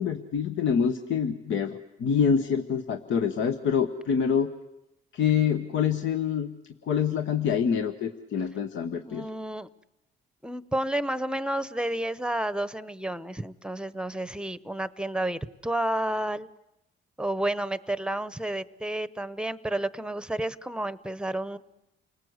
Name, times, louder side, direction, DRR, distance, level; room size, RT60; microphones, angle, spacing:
voice 1, 0.0-4.5 5.1-6.5 6.8-9.3, left 7 dB, 75° left, 7 dB, 1.1 m, -26 dB
voice 2, 9.0-9.7 10.4-16.5 17.2-21.6, right 1 dB, 5° right, 16 dB, 0.8 m, -31 dB
29.0 x 19.5 x 8.0 m, 0.90 s
cardioid pair, 90°, 20 cm